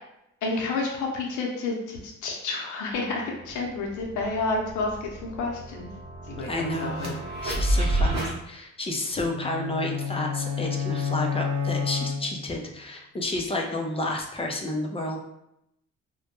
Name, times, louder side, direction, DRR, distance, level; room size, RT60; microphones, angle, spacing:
voice 1, 0.4-5.9 6.3-7.1, left 3 dB, 80° left, 0 dB, 0.6 m, -30 dB
sound 1, 2.9-3.0 3.3-8.3, right 1 dB, 60° right, 0.8 m, -30 dB
voice 2, 6.5-15.2, left 1 dB, 20° left, 1 dB, 0.4 m, -31 dB
sound 2, 9.2-12.7, left 7 dB, 90° right, 0.5 m, -30 dB
2.1 x 2.1 x 2.9 m, 0.81 s
cardioid pair, 90°, 30 cm